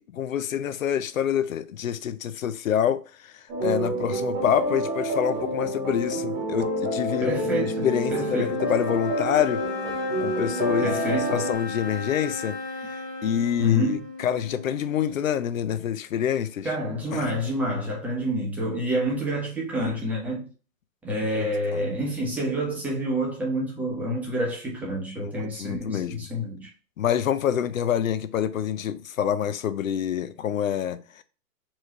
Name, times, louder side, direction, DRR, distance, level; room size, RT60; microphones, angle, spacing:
voice 1, 0.0-3.3 3.6-9.6 10.2-12.6 12.9-16.7 17.1-17.3 21.4-21.9 25.2-25.3 25.6-26.3 27.0-31.2, left 9 dB, 55° left, 0.5 m, -27 dB
sound 1, 3.5-11.6, right 1 dB, 20° right, 1.2 m, -28 dB
sound 2, 6.2-15.6, left 3 dB, 15° left, 0.5 m, -36 dB
voice 2, 7.2-8.6 10.8-11.4 13.6-14.0 16.6-20.5 21.0-26.7, equal, 5° right, 1.0 m, -28 dB
4.5 x 3.1 x 3.0 m
figure-of-eight pair, 130°, 49 cm